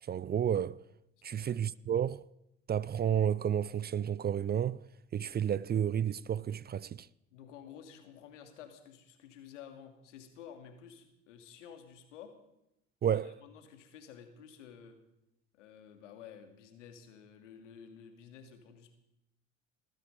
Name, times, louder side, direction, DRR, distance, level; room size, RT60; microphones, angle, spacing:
voice 1, 0.0-0.8 1.2-2.3 2.7-4.8 5.1-7.1 13.0-13.4, right 9 dB, 30° right, 0.5 m, -31 dB
voice 2, 7.3-12.3 13.1-15.0 15.5-19.0, left 8 dB, 85° left, 2.6 m, -52 dB
19.5 x 13.5 x 5.4 m
hypercardioid pair, 70°, 36 cm